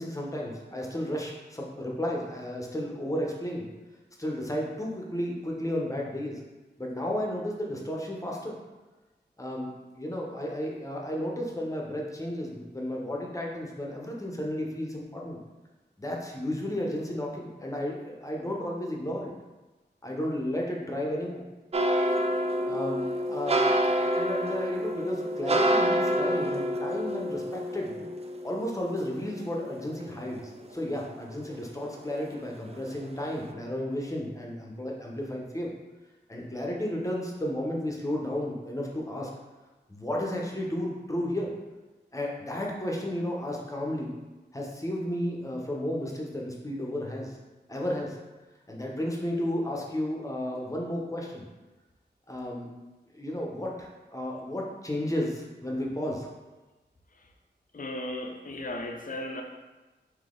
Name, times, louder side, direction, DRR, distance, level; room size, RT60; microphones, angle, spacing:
voice 1, 0.0-3.7 4.2-6.4 6.8-8.6 9.4-15.4 16.0-19.3 20.0-21.4 22.7-28.1 28.4-35.7 36.3-39.3 39.9-41.5 42.1-44.2 44.5-47.4 47.7-48.2 48.7-51.5 52.3-52.7 53.1-56.3, left 1 dB, 15° left, -1 dB, 1.0 m, -33 dB
sound 1, 21.7-30.9 31.3-32.4 32.7-33.0 33.4-33.5, right 1 dB, 35° right, 0.4 m, -28 dB
voice 2, 57.7-59.4, left 1 dB, 45° left, 2 dB, 0.7 m, -36 dB
4.0 x 2.9 x 3.7 m, 1.2 s
cardioid pair, 50°, 18 cm